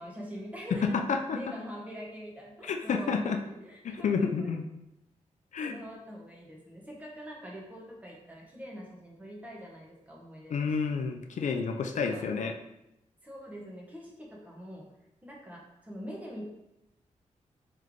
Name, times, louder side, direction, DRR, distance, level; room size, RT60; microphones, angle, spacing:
voice 1, 0.0-1.0 1.3-4.5 5.6-10.7 11.9-12.3 13.2-14.9 15.2-16.4, equal, 10° right, -3 dB, 1.1 m, -44 dB
voice 2, 0.8-1.4 2.6-3.4 3.8-4.6 5.5-5.8 10.5-12.5, left 5 dB, 70° left, 4 dB, 0.4 m, -30 dB
3.3 x 3.2 x 3.7 m, 0.87 s
wide cardioid pair, 100°, 13 cm